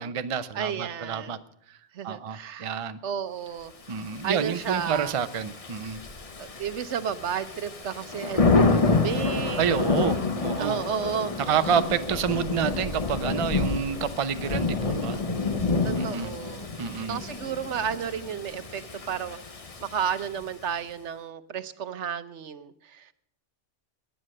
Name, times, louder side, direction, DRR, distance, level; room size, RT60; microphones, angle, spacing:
voice 1, 0.0-1.4 2.0-3.0 3.9-6.0 9.6-10.8 11.5-15.2 15.9-16.3 16.8-17.2, right 7 dB, 35° right, 11 dB, 0.6 m, -28 dB
voice 2, 0.5-1.4 1.9-5.1 6.4-9.9 10.6-11.5 15.8-16.7 17.1-19.4 19.8-23.1, right 8 dB, 75° right, 13 dB, 1.1 m, -33 dB
Thunder / Rain, 4.0-20.6, left 3 dB, 30° left, 1.0 m, -28 dB
17.5 x 10.5 x 6.5 m, 0.69 s
omnidirectional pair, 1.2 m